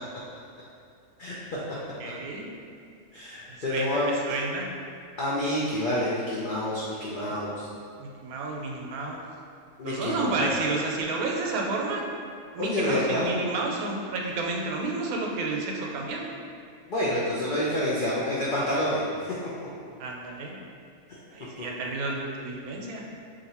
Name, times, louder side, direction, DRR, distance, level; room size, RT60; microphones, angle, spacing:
voice 1, 2.0-2.5 3.5-4.7 7.3-7.4 8.0-9.2 9.8-12.0 12.5-16.3 20.0-20.6 21.3-23.0, right 3 dB, 80° right, -1 dB, 1.0 m, -31 dB
voice 2, 3.1-4.2 5.2-7.7 9.8-10.5 12.6-13.3 16.9-19.3 21.1-21.2, left 1 dB, 85° left, -7 dB, 0.4 m, -28 dB
2.7 x 2.5 x 4.1 m, 2.3 s
omnidirectional pair, 1.5 m